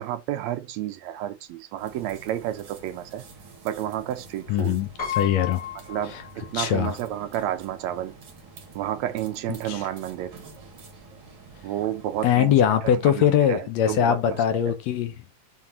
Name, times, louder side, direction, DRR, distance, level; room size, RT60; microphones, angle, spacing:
voice 1, 0.0-3.2 3.7-4.8 5.9-8.2 8.8-10.3 11.6-12.6 12.8-14.4, right 12 dB, 80° right, 1.7 m, -31 dB
sound 1, 1.8-12.4, right 4 dB, 50° right, 2.1 m, -48 dB
voice 2, 4.5-5.6 6.0-6.2 6.5-7.0 9.6-9.8 12.2-15.2, left 10 dB, 75° left, 1.8 m, -22 dB
Piano, 5.0-6.8 7.1-7.2 8.4-8.5 8.8-9.0, left 9 dB, 20° left, 1.7 m, -34 dB
5.9 x 3.7 x 4.2 m
omnidirectional pair, 3.4 m